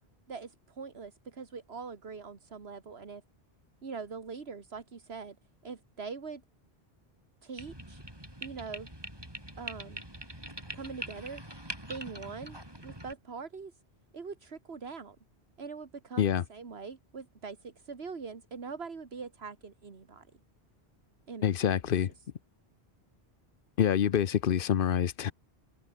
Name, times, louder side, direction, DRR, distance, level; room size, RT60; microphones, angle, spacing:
voice 1, 0.3-3.2 3.8-5.4 5.6-6.4 7.4-8.0 8.4-8.9 9.6-10.0 10.7-11.4 11.9-12.6 12.8-13.8 14.1-15.2 15.6-20.3 21.3-21.5, right 5 dB, 75° right, 2.0 m, -42 dB
sound 1, 7.6-13.1, right 1 dB, 20° right, 6.4 m, -43 dB
voice 2, 21.4-22.1 23.8-25.3, left 9 dB, 60° left, 0.9 m, -26 dB
open air
omnidirectional pair, 1.1 m